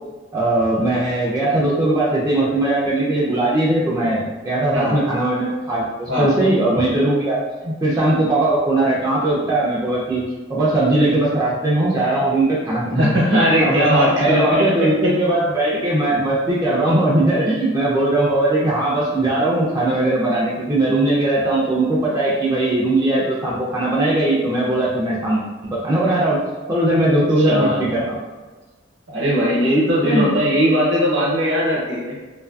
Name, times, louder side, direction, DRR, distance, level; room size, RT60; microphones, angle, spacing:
voice 1, 0.3-10.2 10.5-26.4 26.7-28.2 30.0-30.3, right 1 dB, 15° right, -7 dB, 0.3 m, -19 dB
voice 2, 12.9-15.1 27.1-27.8 29.1-32.1, equal, 70° right, -5 dB, 0.8 m, -19 dB
2.7 x 2.4 x 2.2 m, 1.3 s
head